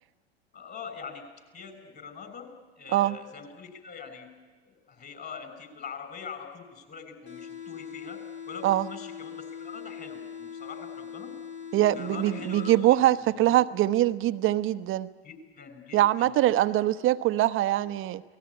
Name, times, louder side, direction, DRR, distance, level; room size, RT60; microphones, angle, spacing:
voice 1, 0.5-1.2 1.5-4.3 4.6-8.2 8.5-11.4 11.9-13.5 15.2-16.5, left 6 dB, 30° left, 7 dB, 6.2 m, -43 dB
sound 1, 7.3-13.2, left 7 dB, 75° left, 3.0 m, -41 dB
voice 2, 11.7-15.1 15.9-18.2, right 14 dB, 40° right, 12 dB, 1.1 m, -23 dB
27.5 x 19.5 x 9.9 m, 1.3 s
figure-of-eight pair, 75°, 32 cm